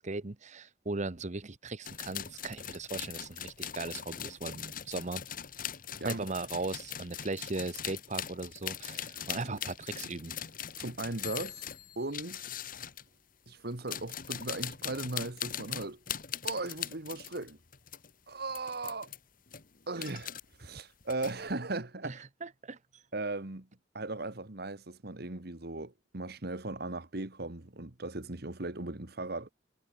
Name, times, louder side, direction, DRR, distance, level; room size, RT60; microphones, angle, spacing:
voice 1, 0.0-5.2 6.0-10.4 22.0-22.1 22.4-22.8, right 3 dB, 40° right, 1.1 m, -38 dB
sound 1, 1.8-13.1 13.7-18.1 18.5-19.2 19.5-20.4 20.8-21.5, left 9 dB, 50° left, 1.8 m, -41 dB
voice 2, 10.8-12.5 13.5-16.0 16.4-17.6 18.3-19.1 19.9-20.3 20.6-22.2 23.1-23.7 23.9-29.5, right 2 dB, 60° right, 1.9 m, -38 dB
head